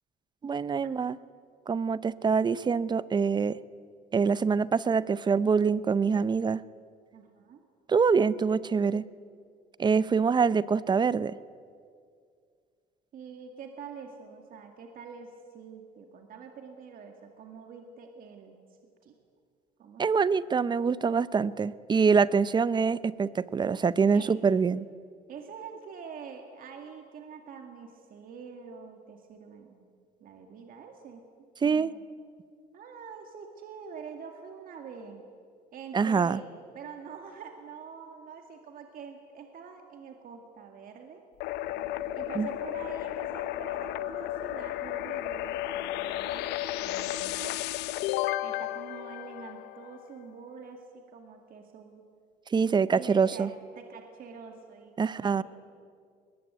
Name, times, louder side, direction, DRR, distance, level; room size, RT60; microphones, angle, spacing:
voice 1, 0.4-1.2 1.7-3.6 4.1-6.6 7.9-9.0 9.8-11.3 20.0-24.9 31.6-31.9 35.9-36.4 42.4-42.5 52.5-53.5 55.0-55.4, right 5 dB, 25° right, 17 dB, 0.6 m, -25 dB
voice 2, 7.1-7.6 13.1-19.2 19.8-20.3 24.1-24.3 25.3-29.9 30.2-31.2 31.6-32.0 32.7-35.2 35.7-41.2 42.1-47.6 48.4-52.0 52.9-53.5 53.8-55.4, right 6 dB, 55° right, 4 dB, 2.2 m, -46 dB
sound 1, 41.4-50.0, left 14 dB, 85° left, 0.6 m, -33 dB
21.5 x 20.5 x 8.1 m, 2.2 s
cardioid pair, 110°, 17 cm